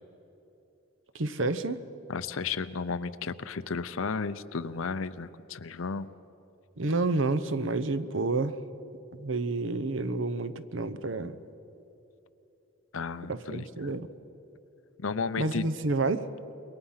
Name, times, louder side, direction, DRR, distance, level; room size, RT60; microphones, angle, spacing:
voice 1, 1.1-1.8 6.8-8.5 9.2-11.4 13.3-14.1 15.4-16.3, right 3 dB, 65° right, 13 dB, 0.9 m, -29 dB
voice 2, 2.1-6.1 12.9-13.9 15.0-15.6, left 5 dB, 75° left, 14 dB, 0.7 m, -33 dB
27.0 x 23.0 x 5.7 m, 3.0 s
head